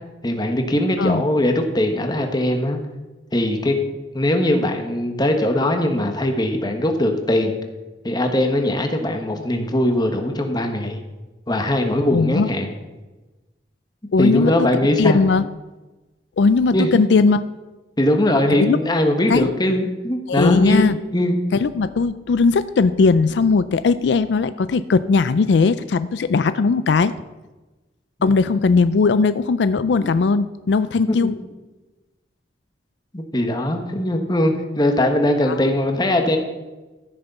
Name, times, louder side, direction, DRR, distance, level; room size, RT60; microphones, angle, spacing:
voice 1, 0.2-2.8 3.3-3.7 4.1-7.5 8.0-11.0 11.5-12.7 14.2-15.2 16.7-16.9 18.0-21.4 28.2-28.3 30.0-30.1 31.1-31.3 33.1-36.4, left 1 dB, 25° left, 4 dB, 1.4 m, -20 dB
voice 2, 12.1-12.5 14.1-14.7 15.0-15.5 16.4-17.4 18.6-18.8 19.3-19.5 20.3-21.0 21.5-27.1 28.2-31.3 35.5-35.6, left 4 dB, 75° left, 14 dB, 0.4 m, -18 dB
14.5 x 6.7 x 5.5 m, 1.1 s
head